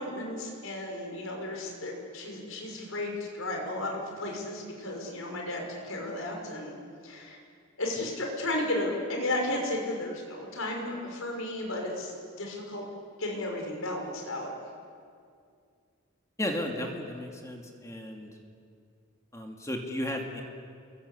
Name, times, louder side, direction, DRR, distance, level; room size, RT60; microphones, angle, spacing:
voice 1, 0.0-6.8 7.0-7.4 7.8-12.8 13.2-14.5, left 1 dB, 80° left, 1 dB, 5.7 m, -34 dB
voice 2, 16.4-18.3 19.3-20.4, left 1 dB, 15° left, 1 dB, 2.5 m, -34 dB
29.5 x 22.5 x 8.5 m, 2.3 s
head